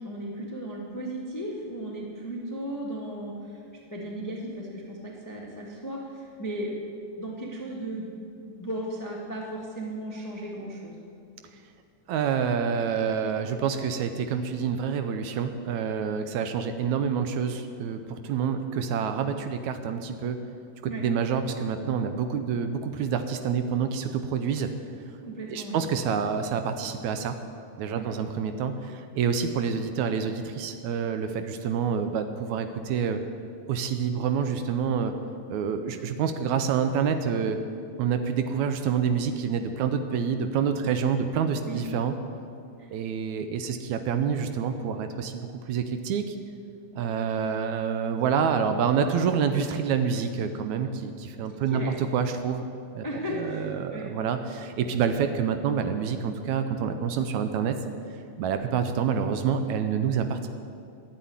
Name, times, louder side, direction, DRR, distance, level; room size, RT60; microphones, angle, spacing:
voice 1, 0.0-3.6 3.9-6.8 7.2-8.1 8.5-10.9 20.8-21.1 25.2-25.8 27.9-28.0 40.8-40.9 41.6-41.8 42.8-42.9 51.5-51.9 53.0-54.1, right 1 dB, 20° left, -2 dB, 0.4 m, -35 dB
voice 2, 12.1-20.4 21.0-24.7 25.5-27.4 27.8-33.2 33.7-35.1 35.5-37.6 38.0-42.1 42.9-46.4 47.0-52.7 52.9-57.8 58.4-60.5, right 7 dB, 75° right, 8 dB, 1.9 m, -27 dB
11.5 x 8.3 x 9.5 m, 2.5 s
omnidirectional pair, 3.6 m